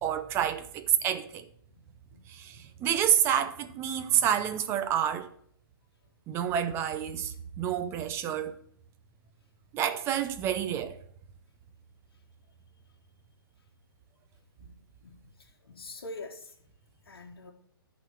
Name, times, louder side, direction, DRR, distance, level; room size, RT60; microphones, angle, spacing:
voice 1, 0.0-1.5 2.3-5.3 6.3-8.5 9.7-11.0, right 9 dB, 20° right, 0.7 m, -28 dB
voice 2, 15.0-16.5 17.1-17.5, left 2 dB, 75° left, 1.5 m, -45 dB
11.5 x 4.2 x 7.4 m
hypercardioid pair, 140°, 13 cm